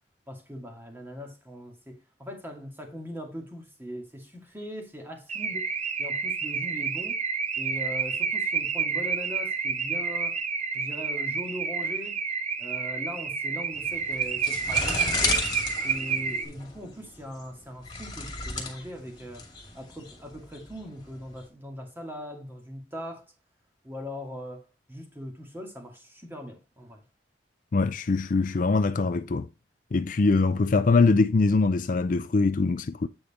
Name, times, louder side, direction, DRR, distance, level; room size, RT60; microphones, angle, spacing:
voice 1, 0.3-5.7 6.0-7.2 7.6-10.4 10.7-12.2 12.6-15.5 15.8-19.5 19.7-23.3 23.8-27.0, equal, 10° right, 2.3 m, -40 dB
Car / Alarm, 5.3-16.4, right 6 dB, 40° right, 1.0 m, -29 dB
sound 1, 13.7-21.4, left 3 dB, 25° left, 2.4 m, -33 dB
voice 2, 27.7-29.5 29.9-33.1, left 3 dB, 50° left, 0.4 m, -23 dB
8.9 x 5.1 x 4.2 m
head